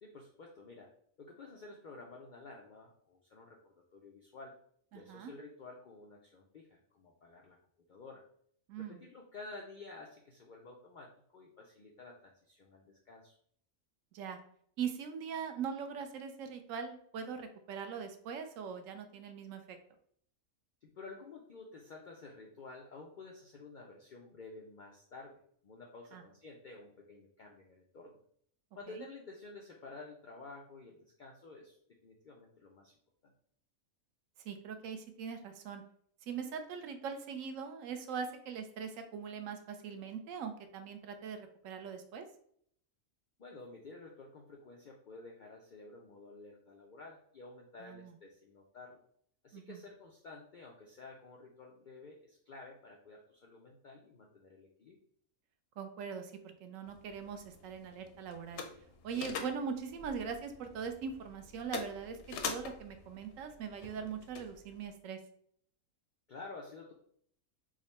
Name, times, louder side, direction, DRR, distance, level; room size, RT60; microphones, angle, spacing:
voice 1, 0.0-4.5 4.9-7.6 7.9-8.2 8.8-13.4 20.8-28.2 28.7-31.8 32.0-32.9 43.4-49.0 49.4-55.0 66.3-66.9, left 3 dB, 85° left, 0 dB, 0.4 m, -51 dB
voice 2, 4.9-5.3 8.7-9.0 14.1-14.4 14.8-19.8 26.1-26.2 29.0-29.1 34.4-35.8 36.2-42.3 47.8-48.1 49.5-49.8 55.8-58.6 59.0-65.2, right 6 dB, 70° right, 7 dB, 0.9 m, -41 dB
sound 1, 56.9-64.9, left 5 dB, 65° left, 0.8 m, -46 dB
3.7 x 2.1 x 4.1 m, 0.64 s
omnidirectional pair, 1.5 m